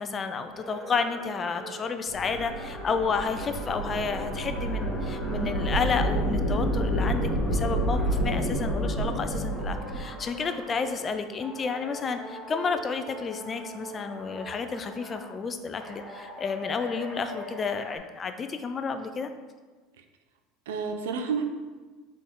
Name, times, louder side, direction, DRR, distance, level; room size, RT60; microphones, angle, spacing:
voice 1, 0.0-19.3, left 5 dB, 30° left, 8 dB, 0.4 m, -31 dB
sound 1, 0.5-11.1 11.4-15.4 15.8-18.0, left 1 dB, 5° left, 1.1 m, -42 dB
sound 2, 2.1-10.1, right 1 dB, 80° left, 1.1 m, -29 dB
voice 2, 5.2-5.6 20.0-20.1 20.7-21.4, right 5 dB, 85° right, 5 dB, 0.5 m, -31 dB
3.8 x 3.7 x 3.6 m, 1.4 s
supercardioid pair, 95°, 0 cm